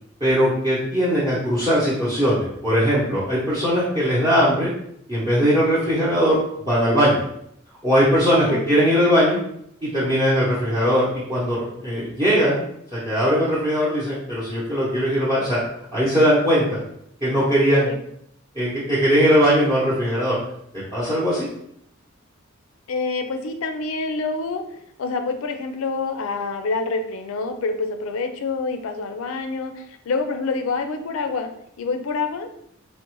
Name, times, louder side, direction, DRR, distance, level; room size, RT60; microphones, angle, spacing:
voice 1, 0.2-4.7 5.1-6.4 6.6-7.2 7.8-9.4 9.8-12.6 12.9-15.6 15.9-16.8 17.2-17.9 18.6-20.4 20.9-21.5, equal, 20° right, -9 dB, 0.7 m, -20 dB
voice 2, 8.5-8.8 17.8-18.0 22.9-24.6 25.0-31.5 31.8-32.5, left 4 dB, 80° left, 7 dB, 0.4 m, -27 dB
3.8 x 2.1 x 3.0 m, 0.73 s
head